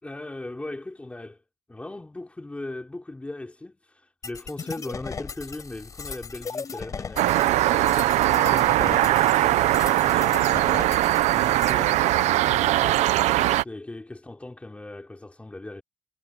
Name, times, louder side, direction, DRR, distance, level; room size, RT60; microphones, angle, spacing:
voice 1, 0.0-1.4 1.7-10.6 11.2-13.0 13.6-15.8, left 2 dB, 10° left, 3.9 m, -39 dB
sound 1, 4.2-11.7, left 5 dB, 30° left, 4.2 m, -37 dB
sound 2, 7.2-13.6, right 15 dB, 80° right, 0.7 m, -21 dB
cardioid pair, 140°, 12 cm